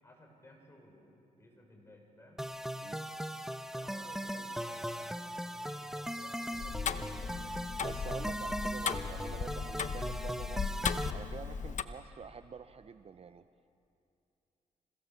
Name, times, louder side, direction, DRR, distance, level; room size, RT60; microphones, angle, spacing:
voice 1, 0.0-2.4 3.3-3.4 3.7-5.2 5.5-7.4, left 1 dB, 20° left, 1 dB, 6.2 m, -57 dB
sound 1, 2.4-11.1, equal, 5° right, 0.9 m, -39 dB
Tick-tock, 6.5-11.8, left 6 dB, 60° left, 0.9 m, -37 dB
voice 2, 7.8-10.7 11.1-13.4, right 6 dB, 45° right, 11 dB, 0.6 m, -47 dB
26.5 x 17.0 x 7.1 m, 2.7 s
cardioid pair, 70°, 15 cm